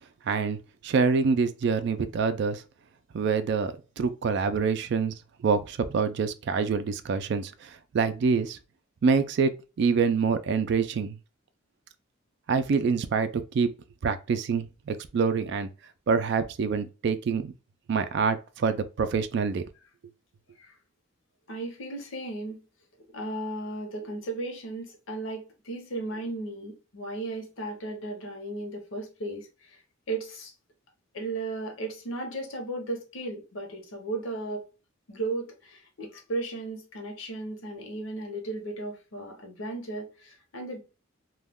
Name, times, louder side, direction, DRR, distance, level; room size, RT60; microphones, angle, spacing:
voice 1, 0.3-2.6 3.1-5.1 5.4-8.6 9.0-9.5 9.8-11.2 12.5-13.7 14.0-15.7 16.1-17.5 17.9-19.6, right 5 dB, 60° right, 0.3 m, -26 dB
voice 2, 21.5-22.6 23.1-29.8 30.1-30.5 31.1-34.6 35.1-40.8, right 2 dB, 85° left, 0.8 m, -35 dB
2.3 x 2.2 x 3.4 m
head